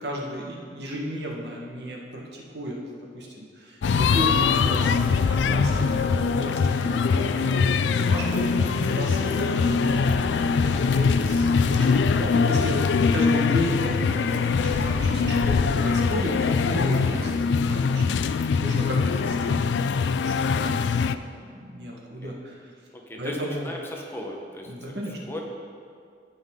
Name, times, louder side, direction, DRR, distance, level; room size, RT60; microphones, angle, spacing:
voice 1, 0.0-2.8 3.1-21.2 21.5-22.5 23.2-23.7 24.7-25.4, equal, 65° right, -1 dB, 1.5 m, -34 dB
sound 1, 3.8-21.2, left 5 dB, 80° left, 0.3 m, -22 dB
sound 2, 3.8-17.4, right 1 dB, 15° right, 0.6 m, -39 dB
voice 2, 21.9-22.4 22.9-25.0 25.3-25.4, left 1 dB, 15° left, 0 dB, 0.9 m, -38 dB
15.5 x 5.5 x 3.7 m, 2.2 s
head